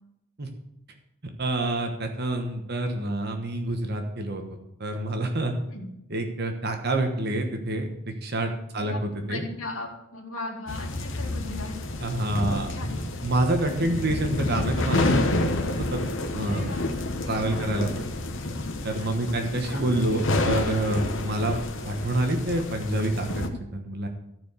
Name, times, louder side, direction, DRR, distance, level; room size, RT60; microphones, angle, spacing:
voice 1, 1.4-4.4 4.8-5.5 6.1-7.9 8.2-9.4 12.0-12.7 13.2-15.4 15.8-16.0 16.3-16.7 17.2-17.9 18.8-24.1, right 1 dB, 45° right, 4 dB, 1.1 m, -27 dB
voice 2, 9.3-11.7 12.5-12.9 13.6-14.0 16.5-16.9 17.2-17.8 19.0-19.3 19.7-19.8, left 2 dB, 80° left, -1 dB, 2.3 m, -38 dB
sound 1, 10.7-23.5, left 2 dB, 60° left, 1.0 m, -29 dB
13.5 x 4.7 x 6.8 m, 0.84 s
head